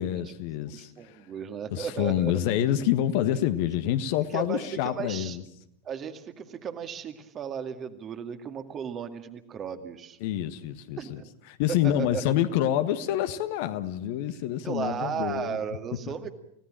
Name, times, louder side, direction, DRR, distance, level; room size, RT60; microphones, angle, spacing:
voice 1, 0.0-1.2 1.7-5.4 10.2-11.2 11.6-15.6, left 11 dB, 50° left, 1.5 m, -27 dB
voice 2, 0.7-2.4 4.3-5.4 5.8-10.2 11.0-11.2 11.8-12.2 14.6-16.3, right 7 dB, 25° right, 2.1 m, -35 dB
29.5 x 17.0 x 7.6 m
figure-of-eight pair, 90°, 0 cm